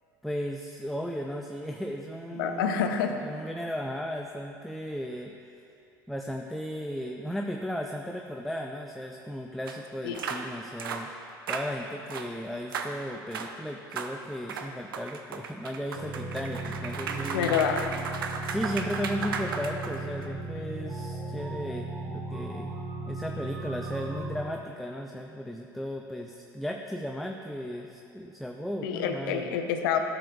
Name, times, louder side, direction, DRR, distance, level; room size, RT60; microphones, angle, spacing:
voice 1, 0.2-2.8 3.2-5.3 6.1-11.1 11.5-17.6 18.5-22.7 23.1-29.5, equal, ahead, 2 dB, 0.4 m, -35 dB
voice 2, 2.3-3.2 10.0-10.3 17.3-17.8 28.8-30.0, left 7 dB, 70° left, 5 dB, 0.6 m, -27 dB
sound 1, 9.7-9.8 10.1-10.4 10.8-11.1 11.5-11.7 12.1-12.3 12.7-12.9 13.3-13.5 13.9-14.1 14.5-20.2, right 6 dB, 80° right, 0.5 m, -35 dB
sound 2, 15.9-24.4, right 2 dB, 35° right, 1.4 m, -37 dB
11.5 x 6.9 x 2.4 m, 2.5 s
hypercardioid pair, 70°, 12 cm